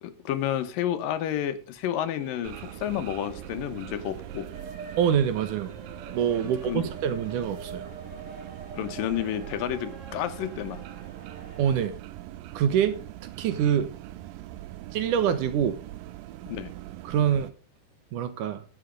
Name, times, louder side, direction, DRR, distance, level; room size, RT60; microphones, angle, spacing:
voice 1, 0.0-4.5 6.4-6.8 8.7-10.8 16.5-16.7, left 11 dB, 80° left, 2.7 m, -30 dB
sound 1, 2.2-11.9, right 3 dB, 35° right, 1.4 m, -45 dB
sound 2, 2.4-17.5, right 15 dB, 90° right, 2.4 m, -42 dB
voice 2, 5.0-5.7 6.1-7.9 11.6-12.0 12.5-13.0 13.4-13.9 14.9-15.8 17.0-17.5 18.1-18.6, right 8 dB, 70° right, 2.5 m, -25 dB
11.5 x 8.2 x 5.1 m
omnidirectional pair, 4.0 m